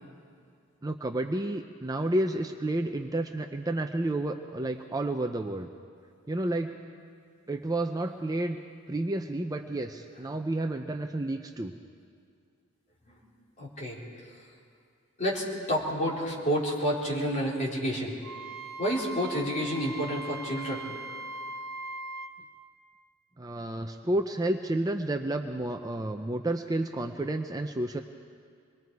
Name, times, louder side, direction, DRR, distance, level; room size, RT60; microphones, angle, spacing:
voice 1, 0.8-5.7 6.3-6.8 7.5-8.6 8.9-11.7 23.4-28.0, right 1 dB, 15° right, 5 dB, 0.5 m, -30 dB
voice 2, 13.6-14.0 15.2-18.1 18.8-20.8, equal, 35° left, -4 dB, 3.8 m, -29 dB
Wind instrument woodwind instrument, 18.2-22.3, right 1 dB, 50° right, 1.1 m, -40 dB
26.0 x 21.0 x 4.7 m, 2.2 s
head